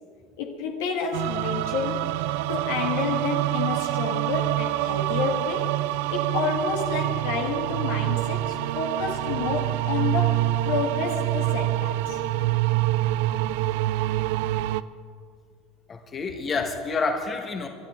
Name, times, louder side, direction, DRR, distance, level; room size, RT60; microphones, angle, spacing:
voice 1, 0.4-2.1 2.5-5.7 6.1-12.2, left 5 dB, 70° left, 2 dB, 1.8 m, -29 dB
sound 1, 1.1-14.8, right 16 dB, 70° right, 0.4 m, -26 dB
voice 2, 15.9-17.7, left 4 dB, 35° left, 4 dB, 1.6 m, -28 dB
27.5 x 12.0 x 3.7 m, 2.3 s
hypercardioid pair, 75°, 0 cm